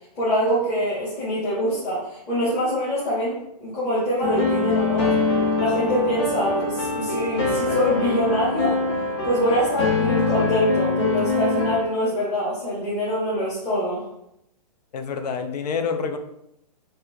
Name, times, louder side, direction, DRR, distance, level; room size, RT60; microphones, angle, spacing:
voice 1, 0.1-5.1 5.6-8.8 9.2-14.0, equal, 20° left, -11 dB, 1.1 m, -24 dB
sound 1, 4.2-11.8, left 3 dB, 40° left, 0.8 m, -24 dB
voice 2, 14.9-16.2, left 5 dB, 70° left, 7 dB, 0.5 m, -27 dB
4.1 x 2.6 x 2.6 m, 0.80 s
hypercardioid pair, 165°, 21 cm